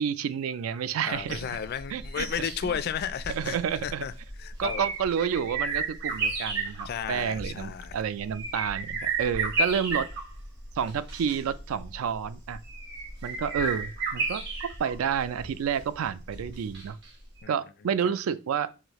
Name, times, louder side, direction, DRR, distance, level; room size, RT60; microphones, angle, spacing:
voice 1, 0.0-1.4 1.9-2.8 3.3-4.1 4.6-10.1 10.8-12.6 13.2-17.0 17.5-18.7, right 7 dB, 80° right, 0.3 m, -30 dB
voice 2, 1.0-3.6 3.8-4.1 4.4-4.9 6.9-7.9 17.4-17.6 18.0-18.1, left 8 dB, 50° left, 0.3 m, -33 dB
sound 1, 1.2-17.1 17.4-17.5, right 3 dB, 60° right, 1.5 m, -34 dB
4.9 x 2.7 x 3.0 m
head